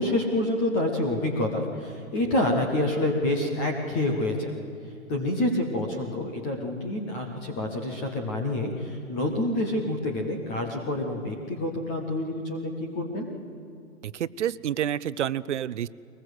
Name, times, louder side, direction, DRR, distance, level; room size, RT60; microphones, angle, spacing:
voice 1, 0.0-4.5 5.1-13.3, left 1 dB, 5° left, 3 dB, 0.5 m, -27 dB
voice 2, 14.0-15.9, right 10 dB, 55° right, 18 dB, 0.6 m, -29 dB
23.0 x 20.0 x 7.9 m, 2.6 s
hypercardioid pair, 150°, 42 cm